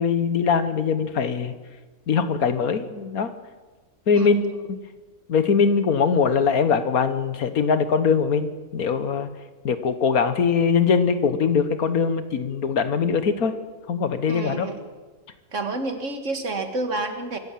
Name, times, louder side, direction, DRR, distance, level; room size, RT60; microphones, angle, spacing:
voice 1, 0.0-1.5 2.1-3.3 4.1-4.6 5.3-9.3 9.7-13.5 13.9-14.7, left 6 dB, 75° left, 11 dB, 1.7 m, -22 dB
voice 2, 4.1-4.6 14.3-14.9 15.5-17.4, right 2 dB, 55° right, 6 dB, 2.2 m, -29 dB
24.5 x 14.0 x 7.6 m, 1.3 s
omnidirectional pair, 1.5 m